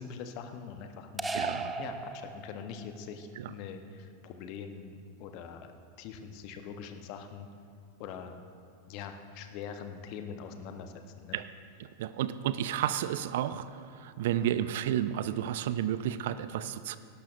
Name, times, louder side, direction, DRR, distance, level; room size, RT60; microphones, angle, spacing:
voice 1, 0.0-1.3 1.8-5.7 6.0-7.5 8.0-8.4 8.9-11.4, left 6 dB, 45° left, 7 dB, 1.0 m, -43 dB
sound 1, 1.2-2.9, right 3 dB, 10° right, 0.6 m, -36 dB
voice 2, 1.3-1.8 11.3-11.5 12.0-17.0, right 11 dB, 55° right, 14 dB, 0.4 m, -31 dB
17.5 x 12.0 x 2.6 m, 2.3 s
figure-of-eight pair, 90°, 0 cm